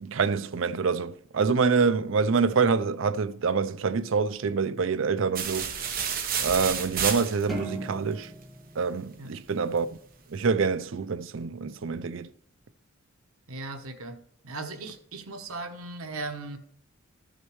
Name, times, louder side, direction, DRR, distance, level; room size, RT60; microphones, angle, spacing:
voice 1, 0.0-5.8 6.4-8.3 8.8-9.9 10.3-12.3, right 5 dB, 65° right, 0.5 m, -26 dB
sound 1, 5.4-7.7, right 7 dB, 40° right, 1.0 m, -30 dB
sound 2, 7.5-10.0, equal, ahead, 1.7 m, -39 dB
voice 2, 13.5-14.2 14.4-16.6, right 3 dB, 90° right, 1.0 m, -37 dB
14.0 x 6.6 x 3.1 m
head